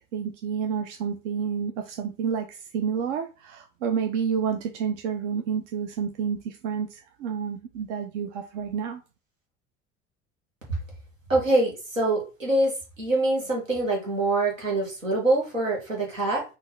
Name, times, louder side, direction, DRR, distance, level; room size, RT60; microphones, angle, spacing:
voice 1, 0.1-9.0, right 7 dB, 65° right, 5 dB, 0.6 m, -29 dB
voice 2, 11.3-12.7 13.0-16.4, right 2 dB, 85° right, -2 dB, 1.4 m, -24 dB
4.0 x 2.6 x 3.9 m, 0.31 s
figure-of-eight pair, 65°, 38 cm